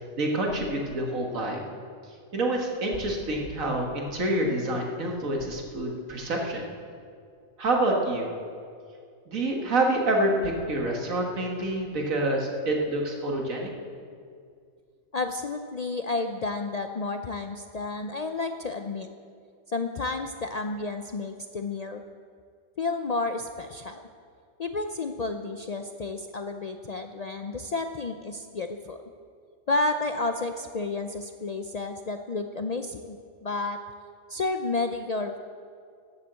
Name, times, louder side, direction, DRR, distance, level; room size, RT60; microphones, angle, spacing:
voice 1, 0.2-1.6 2.3-6.6 7.6-8.3 9.3-13.7, right 1 dB, 85° right, 1 dB, 2.1 m, -27 dB
voice 2, 15.1-19.1 19.7-22.0 22.8-24.0 24.6-29.0 29.7-33.2 33.4-33.8 34.3-35.4, left 3 dB, 65° left, 6 dB, 0.4 m, -31 dB
13.0 x 8.2 x 8.0 m, 2.3 s
omnidirectional pair, 1.4 m